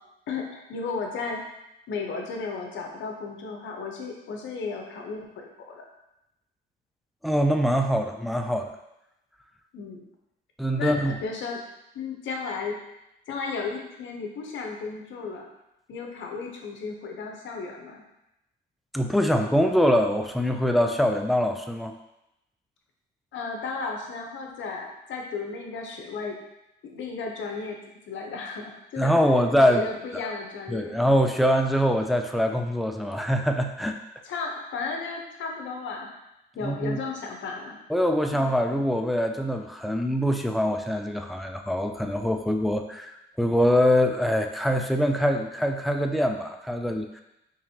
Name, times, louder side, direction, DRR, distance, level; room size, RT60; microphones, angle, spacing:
voice 1, 0.3-1.4 1.9-5.8 9.7-10.0 10.8-11.6 11.9-12.8 13.3-15.4 15.9-18.0 23.3-26.4 26.8-27.8 28.1-29.1 29.7-31.0 34.2-36.1 36.6-37.8 38.3-38.4, left 4 dB, 70° left, 1 dB, 0.8 m, -34 dB
voice 2, 7.2-8.7 10.6-11.2 18.9-21.9 29.0-29.9 30.7-34.0 36.6-37.0 37.9-47.2, equal, ahead, 4 dB, 0.3 m, -24 dB
4.0 x 3.0 x 2.8 m, 0.88 s
cardioid pair, 90°, 20 cm